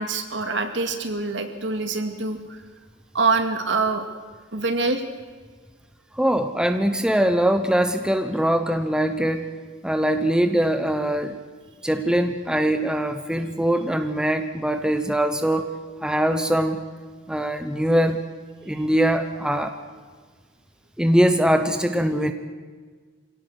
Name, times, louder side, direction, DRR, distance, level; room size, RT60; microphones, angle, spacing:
voice 1, 0.0-2.6 3.1-4.1 4.5-5.0, right 3 dB, 70° right, 6 dB, 2.3 m, -25 dB
voice 2, 6.1-9.4 9.8-11.3 11.8-15.7 16.0-16.8 17.3-18.2 18.6-19.8 21.0-22.3, right 1 dB, 5° right, 7 dB, 0.9 m, -22 dB
25.0 x 17.5 x 8.0 m, 1.5 s
head